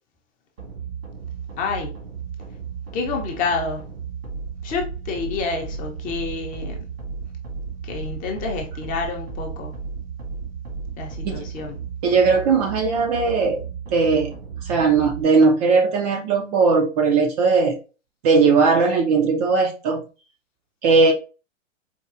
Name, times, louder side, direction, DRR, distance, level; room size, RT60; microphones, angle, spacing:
sound 1, 0.6-15.2, right 5 dB, 75° right, 1.7 m, -34 dB
voice 1, 1.6-2.0 2.9-4.0 4.6-6.9 7.8-9.8 11.0-11.8, left 4 dB, 20° left, 0.6 m, -29 dB
voice 2, 12.0-13.6 13.9-14.3 14.6-17.8 18.2-20.0 20.8-21.1, right 4 dB, 35° right, 0.4 m, -18 dB
4.4 x 2.2 x 2.4 m
hypercardioid pair, 125°, 38 cm